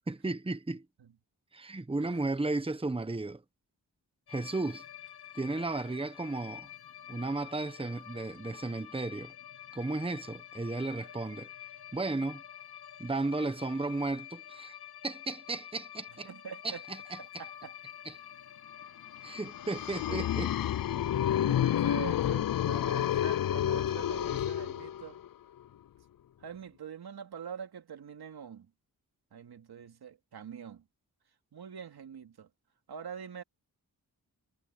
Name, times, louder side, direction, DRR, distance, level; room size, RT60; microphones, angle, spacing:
voice 1, 0.1-0.8 1.5-3.4 4.3-4.8 5.3-6.7 7.1-9.3 9.7-11.5 11.9-12.4 13.0-14.8 15.0-16.3 16.6-17.4 18.0-18.1 19.2-20.5, right 2 dB, 15° right, 1.1 m, -34 dB
sound 1, 4.3-22.1, left 11 dB, 90° left, 1.2 m, -48 dB
voice 2, 16.2-16.8 17.2-17.8 20.1-20.2 21.4-25.2 26.4-28.7 29.3-30.8 31.5-32.5 32.9-33.4, right 7 dB, 90° right, 2.8 m, -44 dB
sound 2, 19.4-25.3, left 11 dB, 65° left, 0.6 m, -30 dB
wide cardioid pair, 85°, 37 cm